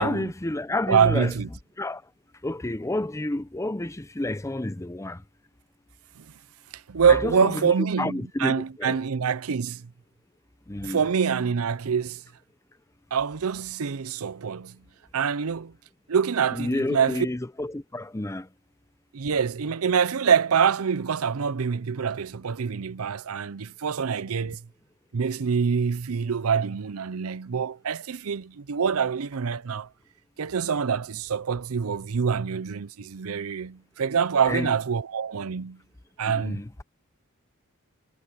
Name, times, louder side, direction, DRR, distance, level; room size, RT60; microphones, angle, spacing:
voice 1, 0.0-1.3 1.8-2.0 2.4-5.2 7.1-7.7 8.0-9.0 10.7-11.0 16.5-18.5 34.5-34.7 36.2-36.7, left 1 dB, 15° left, 0.7 m, -30 dB
voice 2, 0.9-1.5 6.2-6.3 6.9-9.9 10.8-12.2 13.1-14.8 15.1-15.7 16.1-17.3 19.1-24.6 25.1-29.9 30.4-35.8 36.2-36.6, right 6 dB, 80° right, 0.6 m, -25 dB
head